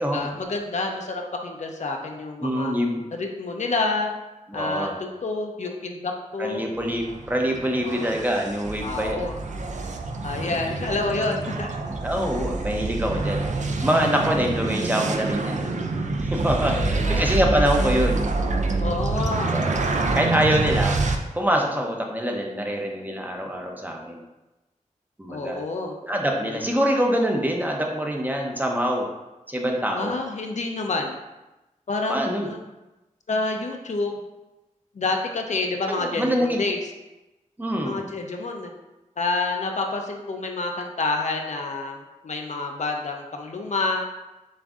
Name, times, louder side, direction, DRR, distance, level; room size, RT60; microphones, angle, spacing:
voice 1, 0.0-2.8 3.1-4.1 4.5-6.7 7.8-8.1 8.8-9.4 10.2-11.7 13.1-13.3 16.7-17.4 18.8-19.6 20.5-20.7 25.3-26.0 26.5-26.6 29.9-31.2 31.9-32.2 32.4-32.6 33.3-34.2 34.9-36.8 37.8-38.7 39.2-44.1, left 3 dB, 60° left, 2 dB, 0.5 m, -28 dB
voice 2, 2.4-3.0 4.5-4.9 6.4-9.3 10.3-10.6 11.9-13.5 13.8-15.7 16.3-18.2 19.2-19.8 20.1-21.0 21.3-24.2 25.2-25.6 26.0-29.1 29.5-30.1 32.1-32.5 35.9-36.6 37.6-38.0, equal, 15° right, 0 dB, 0.5 m, -25 dB
sound 1, 6.8-21.2, right 3 dB, 65° right, 0.4 m, -26 dB
7.2 x 2.6 x 2.4 m, 1.0 s
wide cardioid pair, 100°, 13 cm